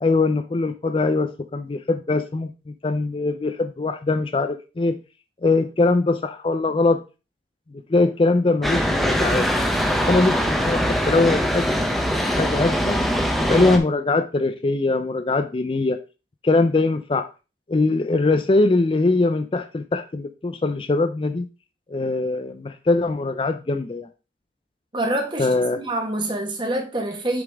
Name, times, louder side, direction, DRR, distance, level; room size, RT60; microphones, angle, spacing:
voice 1, 0.0-5.0 5.4-7.0 7.7-9.5 10.0-11.9 12.3-13.0 13.4-16.0 16.4-17.3 17.7-21.5 21.9-24.1 25.4-25.8, left 3 dB, 30° left, 0.4 m, -22 dB
sound 1, 8.6-13.8, equal, ahead, 0.7 m, -22 dB
voice 2, 24.9-25.5 25.8-27.4, right 1 dB, 25° right, 1.3 m, -26 dB
6.9 x 5.1 x 3.4 m
head